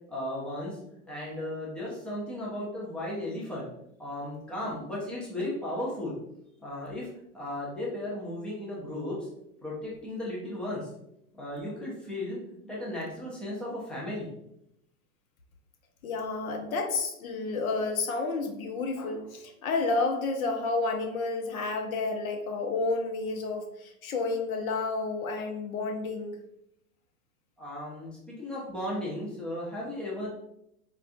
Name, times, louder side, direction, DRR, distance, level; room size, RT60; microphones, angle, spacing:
voice 1, 0.1-0.8 1.1-3.7 4.0-6.1 6.6-7.1 7.3-9.3 9.6-10.9 11.3-14.3 27.6-30.3, left 1 dB, ahead, -6 dB, 0.3 m, -35 dB
voice 2, 16.0-26.4, left 3 dB, 70° left, 4 dB, 0.8 m, -30 dB
4.2 x 2.3 x 2.4 m, 0.80 s
hypercardioid pair, 115°, 43 cm